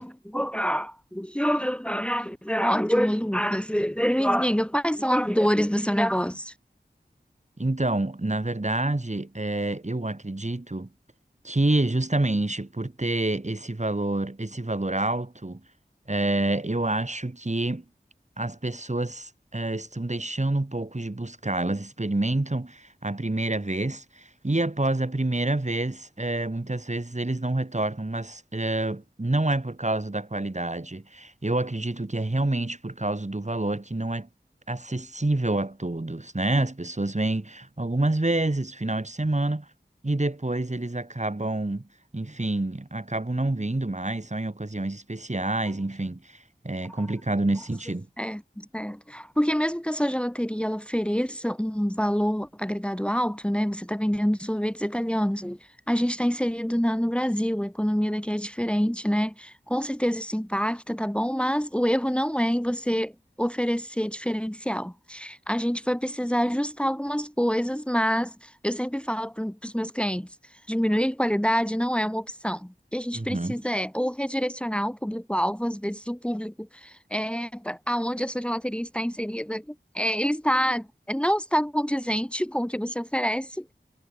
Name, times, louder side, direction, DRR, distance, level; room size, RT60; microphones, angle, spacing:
voice 1, 0.0-6.5 46.9-47.1 48.2-63.1 63.4-83.7, equal, 5° left, 2.6 m, -26 dB
voice 2, 7.6-10.9 11.4-15.6 16.1-17.8 18.4-34.3 34.7-39.7 40.0-41.8 42.1-48.1 73.1-73.6, right 2 dB, 40° right, 4.7 m, -28 dB
wide cardioid pair, 55°, 18 cm